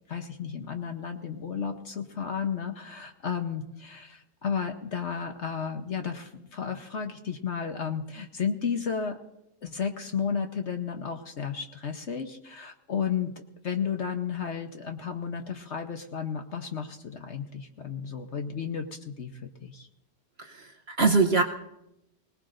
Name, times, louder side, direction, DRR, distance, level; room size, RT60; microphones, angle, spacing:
voice 1, 0.1-9.2 9.6-13.3 13.6-19.9, left 6 dB, 50° left, 5 dB, 1.1 m, -33 dB
voice 2, 20.4-21.4, right 4 dB, 50° right, 4 dB, 0.9 m, -23 dB
24.5 x 18.5 x 2.6 m, 0.85 s
omnidirectional pair, 1.7 m